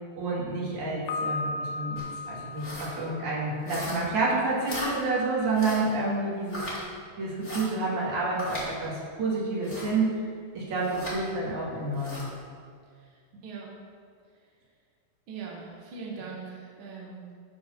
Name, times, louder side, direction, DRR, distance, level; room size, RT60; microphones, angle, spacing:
voice 1, 0.2-6.6 7.2-10.2 10.5-12.3, right 3 dB, 50° right, -6 dB, 3.2 m, -29 dB
Piano, 1.1-4.0, left 2 dB, 85° left, 1.9 m, -36 dB
sound 1, 1.9-2.1 2.5-2.9 3.6-4.2 4.6-4.9 5.5-5.9 6.5-6.8 7.4-7.7 8.4-8.7 9.6-9.9 10.8-11.2 11.9-12.3, left 1 dB, 25° left, 1.9 m, -37 dB
voice 2, 12.9-13.7 15.3-17.2, right 5 dB, 75° right, -3 dB, 1.2 m, -41 dB
11.0 x 4.7 x 6.4 m, 2.1 s
omnidirectional pair, 4.7 m